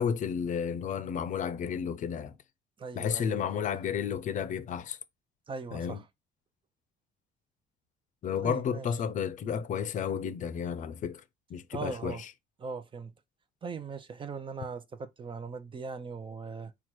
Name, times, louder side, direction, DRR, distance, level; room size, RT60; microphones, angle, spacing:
voice 1, 0.0-2.4 2.9-5.0 5.7-6.0 8.2-11.2 11.5-12.2, left 7 dB, 50° left, 0.6 m, -32 dB
voice 2, 2.8-3.7 5.5-6.1 8.4-8.9 11.7-12.2 12.6-13.1 13.6-16.7, right 5 dB, 30° right, 0.7 m, -40 dB
4.5 x 2.4 x 4.4 m
cardioid pair, 110°, 17 cm